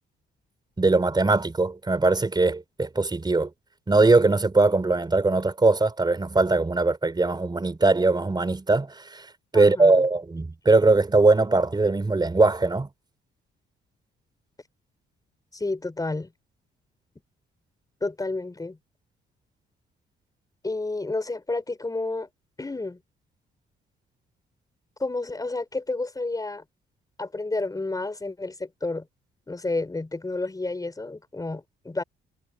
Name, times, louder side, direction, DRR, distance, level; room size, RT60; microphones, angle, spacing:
voice 1, 0.8-3.5 3.9-9.3 9.5-12.9, right 3 dB, 20° right, 4.5 m, -21 dB
voice 2, 9.5-10.0 15.5-16.3 18.0-18.8 20.6-22.3 22.6-23.0 25.0-26.6 27.2-29.1 29.5-32.0, left 2 dB, 20° left, 5.2 m, -30 dB
cardioid pair, 90°, 20 cm